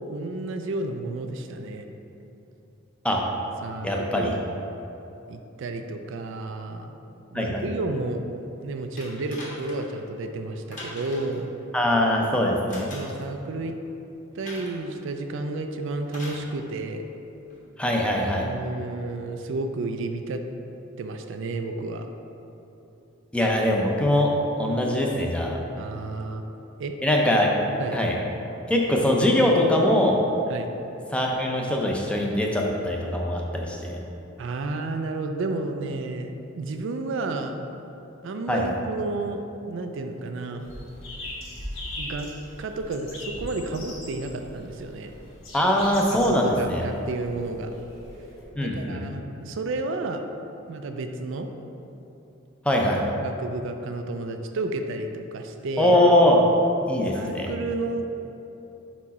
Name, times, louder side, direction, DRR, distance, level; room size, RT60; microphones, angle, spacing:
voice 1, 0.1-1.9 3.6-4.3 5.3-7.0 7.3-8.2 8.6-11.5 12.9-13.8 14.3-17.0 18.4-20.4 21.0-22.1 25.8-26.4 26.8-26.9 27.8-28.0 30.5-30.7 34.4-37.6 38.2-40.7 42.0-42.3 42.6-45.1 46.2-47.7 48.6-50.2 50.7-51.5 53.2-56.0 57.1-58.1, right 2 dB, 65° right, 6 dB, 0.4 m, -31 dB
voice 2, 3.8-4.4 7.3-7.7 11.7-12.9 17.8-18.5 23.3-24.3 24.6-25.6 27.0-27.5 27.9-28.2 28.7-30.2 31.1-34.0 38.5-38.7 45.5-46.8 48.6-49.0 52.7-53.0 55.8-56.5 56.9-57.5, left 1 dB, 5° left, -1 dB, 0.5 m, -22 dB
sound 1, 9.0-9.9 10.7-11.4 12.7-13.3 14.4-14.9 16.1-16.5 17.5-17.6, left 1 dB, 40° left, 1.4 m, -41 dB
sound 2, 40.6-48.4, left 1 dB, 70° left, 1.2 m, -40 dB
5.0 x 4.5 x 4.1 m, 3.0 s
head